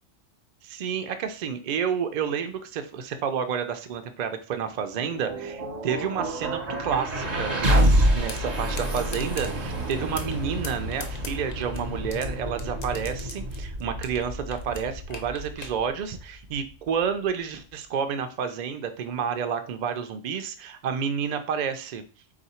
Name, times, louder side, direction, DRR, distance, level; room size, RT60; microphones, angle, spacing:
voice 1, 0.6-22.0, right 7 dB, 60° right, 8 dB, 0.5 m, -30 dB
sound 1, 4.7-16.7, equal, 40° right, 0.8 m, -28 dB
sound 2, 8.3-8.4 8.7-9.5 9.9-10.4 10.6-12.3 12.6-14.3 14.5-15.7, left 4 dB, 50° left, 0.5 m, -39 dB
3.8 x 2.5 x 4.2 m, 0.37 s
omnidirectional pair, 1.2 m